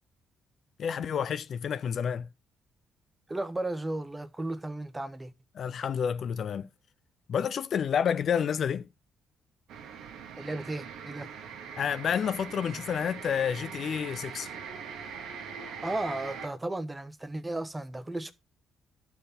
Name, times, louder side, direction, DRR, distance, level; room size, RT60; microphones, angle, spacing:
voice 1, 0.8-2.3 5.6-6.7 7.3-8.9 11.8-14.5, left 7 dB, 60° left, 0.4 m, -29 dB
voice 2, 3.3-5.3 10.4-11.3 15.6-18.3, right 2 dB, 15° right, 1.0 m, -34 dB
sound 1, 9.7-16.5, right 6 dB, 85° right, 1.4 m, -42 dB
11.5 x 4.6 x 5.2 m
cardioid pair, 90°, 0 cm